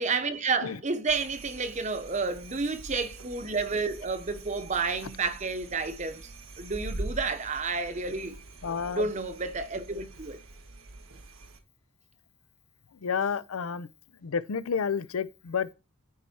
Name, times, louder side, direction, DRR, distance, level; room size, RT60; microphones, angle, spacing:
voice 1, 0.0-6.2 6.6-8.4 8.9-10.4, right 4 dB, 35° right, 0.8 m, -30 dB
sound 1, 1.1-11.6, right 2 dB, 80° right, 1.5 m, -44 dB
voice 2, 8.6-9.1 13.0-13.9 14.2-15.7, left 6 dB, 90° left, 0.5 m, -30 dB
9.5 x 4.6 x 4.3 m
head